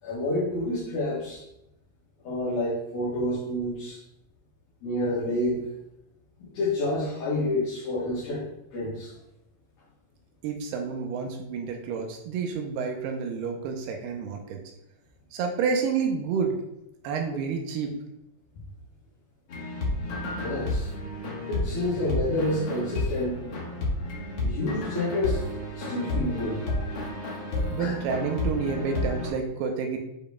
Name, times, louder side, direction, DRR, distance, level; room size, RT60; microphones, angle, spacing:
voice 1, 0.0-1.4 2.2-4.0 4.8-5.6 6.4-8.5 8.7-9.2 20.4-20.9 21.5-23.4 24.4-25.4 25.7-26.6 27.8-28.0, left 1 dB, 65° left, -9 dB, 3.2 m, -28 dB
voice 2, 10.4-14.6 15.3-16.6 17.0-17.9 27.7-30.0, right 5 dB, 80° right, 2 dB, 2.5 m, -29 dB
sound 1, 19.5-29.3, left 1 dB, 85° left, 1.2 m, -31 dB
8.8 x 5.1 x 2.3 m, 0.84 s
omnidirectional pair, 5.0 m